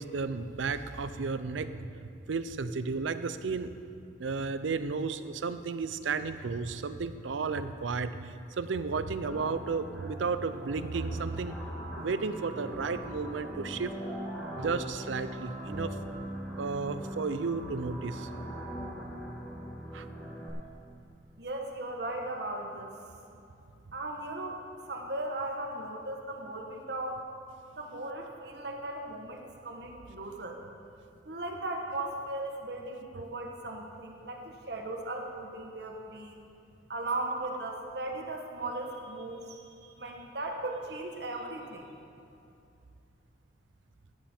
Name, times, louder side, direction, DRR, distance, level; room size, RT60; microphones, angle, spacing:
voice 1, 0.0-3.7 4.2-11.6 12.0-13.9 14.6-16.0 16.6-18.3 19.9-20.1, right 4 dB, 80° right, 12 dB, 0.5 m, -33 dB
sound 1, 9.2-20.5, right 1 dB, 5° left, 2.4 m, -41 dB
voice 2, 21.4-23.1 23.9-27.2 27.7-30.6 31.2-36.4 36.9-41.9, right 2 dB, 55° right, 2 dB, 1.3 m, -37 dB
14.5 x 9.5 x 4.4 m, 2.6 s
head